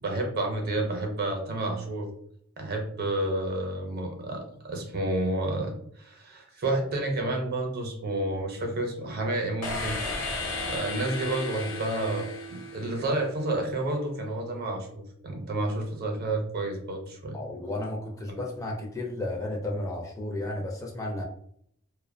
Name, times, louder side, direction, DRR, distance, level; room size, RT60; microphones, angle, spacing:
voice 1, 0.0-2.1 2.6-10.0 10.6-17.4 18.3-18.4, right 2 dB, 50° right, 2 dB, 0.6 m, -30 dB
sound 1, 9.6-13.5, left 2 dB, 90° left, 0.6 m, -34 dB
voice 2, 17.3-21.2, left 1 dB, 15° left, 0 dB, 0.4 m, -33 dB
2.5 x 2.1 x 2.5 m, 0.66 s
head